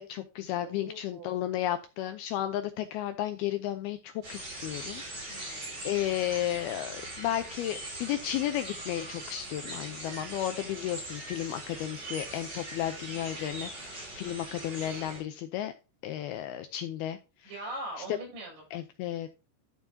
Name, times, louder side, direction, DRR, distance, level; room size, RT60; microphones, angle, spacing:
voice 1, 0.0-15.7 16.0-17.2 18.7-19.3, left 12 dB, 85° left, 9 dB, 2.3 m, -33 dB
voice 2, 0.6-1.3 5.3-5.9 17.4-18.6, right 1 dB, 75° right, -2 dB, 8.3 m, -42 dB
sound 1, 4.2-15.2, right 2 dB, 35° right, 5.3 m, -41 dB
13.5 x 7.1 x 2.8 m, 0.30 s
omnidirectional pair, 5.1 m